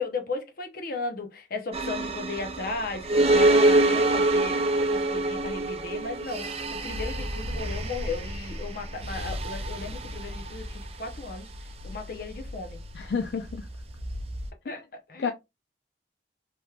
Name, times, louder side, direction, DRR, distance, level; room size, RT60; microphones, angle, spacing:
voice 1, 0.0-11.5 11.8-12.8 14.6-14.8 15.1-15.3, left 3 dB, 55° left, 0.8 m, -35 dB
sound 1, 1.7-14.5, right 2 dB, 35° right, 0.5 m, -27 dB
voice 2, 12.9-13.7 14.7-14.8 15.2-15.3, left 5 dB, 70° left, 0.4 m, -30 dB
3.3 x 3.0 x 2.3 m
head